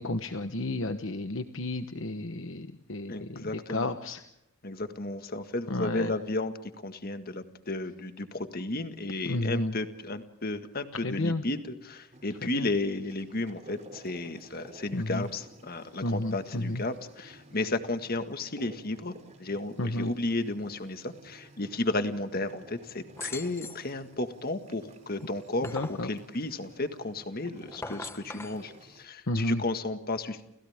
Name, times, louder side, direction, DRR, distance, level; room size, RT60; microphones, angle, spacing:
voice 1, 0.0-4.2 5.7-6.1 9.2-9.7 10.9-11.4 12.4-12.7 14.9-15.3 16.0-16.8 19.8-20.1 25.6-26.1 29.3-29.6, left 1 dB, 60° left, 8 dB, 1.1 m, -32 dB
voice 2, 3.1-3.9 4.6-19.1 19.4-30.4, left 2 dB, 45° left, 8 dB, 1.8 m, -33 dB
sound 1, 12.1-29.0, right 2 dB, 30° right, 3.1 m, -53 dB
sound 2, 23.2-23.9 25.2-26.1 27.6-28.6, left 3 dB, 10° left, 1.2 m, -40 dB
30.0 x 29.5 x 3.6 m, 0.86 s
head